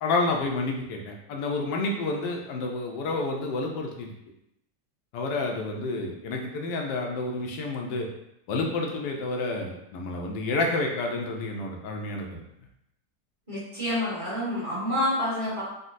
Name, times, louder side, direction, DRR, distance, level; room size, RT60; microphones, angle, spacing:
voice 1, 0.0-4.1 5.1-8.1 8.5-12.4, left 2 dB, 90° left, 1 dB, 1.2 m, -29 dB
voice 2, 13.5-15.6, left 1 dB, 20° right, -10 dB, 1.1 m, -28 dB
3.9 x 2.1 x 2.5 m, 0.80 s
omnidirectional pair, 1.8 m